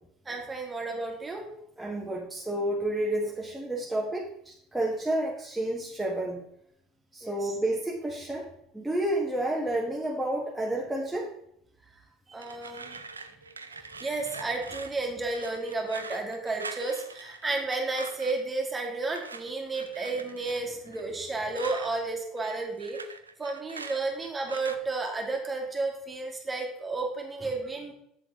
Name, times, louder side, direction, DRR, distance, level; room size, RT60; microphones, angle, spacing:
voice 1, 0.3-1.4 7.2-7.5 12.3-13.0 14.0-23.0 23.4-27.9, right 3 dB, 20° right, 2 dB, 2.2 m, -32 dB
voice 2, 1.8-6.4 7.1-8.5 8.7-11.3, right 1 dB, 5° right, -4 dB, 1.6 m, -30 dB
sound 1, 12.4-18.5 19.0-21.9 22.2-24.8, right 4 dB, 90° right, 0.4 m, -43 dB
7.8 x 7.5 x 3.8 m, 0.73 s
figure-of-eight pair, 65°, 0 cm